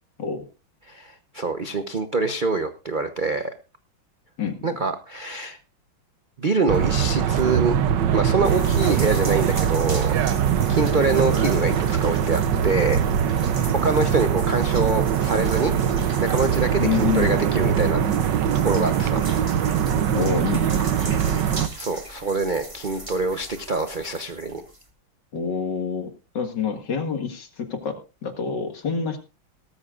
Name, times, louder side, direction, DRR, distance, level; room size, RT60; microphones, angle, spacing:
voice 1, 0.9-3.5 4.6-5.6 6.4-7.8 8.1-10.1 10.7-13.0 13.8-15.7 16.2-18.0 18.6-19.2 21.8-24.6, right 3 dB, 50° right, 8 dB, 0.6 m, -25 dB
voice 2, 4.4-4.7 16.8-17.4 20.1-20.8 25.3-26.1 26.3-29.2, left 6 dB, 60° left, 6 dB, 2.4 m, -27 dB
sound 1, 6.7-21.7, right 8 dB, 65° right, 1.4 m, -22 dB
sound 2, 8.4-24.9, right 1 dB, 15° right, 1.9 m, -39 dB
18.5 x 13.5 x 2.5 m, 0.31 s
omnidirectional pair, 2.2 m